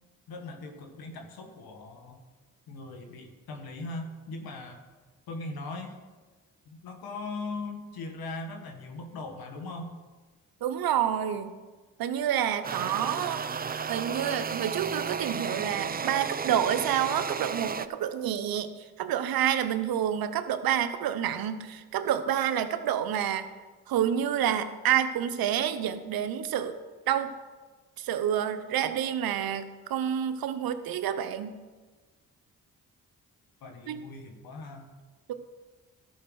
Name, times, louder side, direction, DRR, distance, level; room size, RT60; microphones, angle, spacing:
voice 1, 0.3-2.2 2.7-4.8 5.3-6.0 6.7-9.9 33.6-34.9, left 2 dB, 85° left, 4 dB, 1.3 m, -39 dB
voice 2, 10.6-11.5 12.0-13.4 13.9-18.7 19.0-23.5 23.9-26.8 27.1-27.3 28.0-31.6 33.9-34.0 35.3-35.4, right 10 dB, 80° right, 10 dB, 0.8 m, -28 dB
sound 1, 12.6-17.9, right 6 dB, 25° right, 0.5 m, -33 dB
12.5 x 5.5 x 6.2 m, 1.3 s
supercardioid pair, 45°, 36 cm